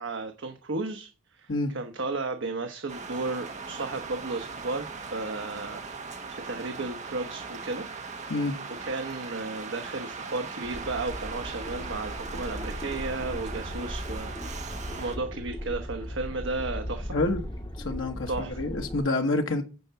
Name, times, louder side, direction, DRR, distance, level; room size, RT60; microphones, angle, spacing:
voice 1, 0.0-5.8 6.3-7.8 8.8-14.7 15.0-17.1 18.3-18.6, right 3 dB, 75° right, 1.0 m, -34 dB
sound 1, 2.9-15.2, right 4 dB, 40° right, 1.3 m, -39 dB
sound 2, 10.6-19.0, equal, 25° left, 1.9 m, -37 dB
voice 2, 17.1-17.4 17.8-19.6, left 2 dB, 85° left, 1.3 m, -27 dB
9.7 x 4.7 x 6.8 m
head